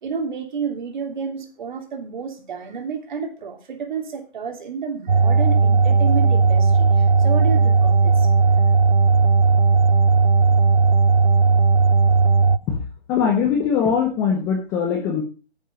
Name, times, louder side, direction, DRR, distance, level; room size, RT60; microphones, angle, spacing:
voice 1, 0.0-8.3, right 5 dB, 45° right, 4 dB, 3.2 m, -31 dB
sound 1, 5.1-12.6, right 4 dB, 80° right, 0.9 m, -16 dB
voice 2, 13.1-15.2, left 7 dB, 10° left, 2 dB, 0.8 m, -21 dB
10.0 x 9.2 x 5.1 m, 0.33 s
figure-of-eight pair, 150°, 34 cm